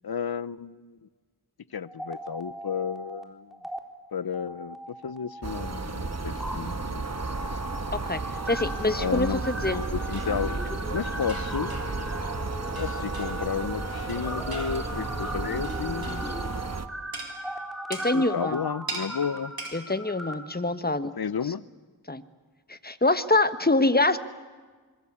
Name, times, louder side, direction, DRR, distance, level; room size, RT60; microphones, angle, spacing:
voice 1, 0.0-1.1 1.7-3.6 4.1-7.0 8.9-11.7 12.8-16.4 18.1-19.5 21.2-21.6, left 7 dB, 70° left, 18 dB, 0.8 m, -32 dB
sound 1, 1.8-3.2 3.5-3.8 4.3-20.3, equal, ahead, 3.7 m, -38 dB
sound 2, 5.4-16.9, right 3 dB, 40° right, 1.3 m, -33 dB
voice 2, 8.5-9.8 17.9-18.6 19.7-21.1 22.1-22.2 22.7-24.2, left 2 dB, 25° left, 11 dB, 1.3 m, -25 dB
sound 3, 10.1-10.4 11.3-12.0 12.8-13.5 14.1-14.9 15.6-16.4 17.1-17.3 17.9-18.2 18.9-19.1 19.6-19.8, right 2 dB, 65° right, 4.6 m, -39 dB
25.5 x 22.5 x 8.7 m, 1.4 s
wide cardioid pair, 45°, 39 cm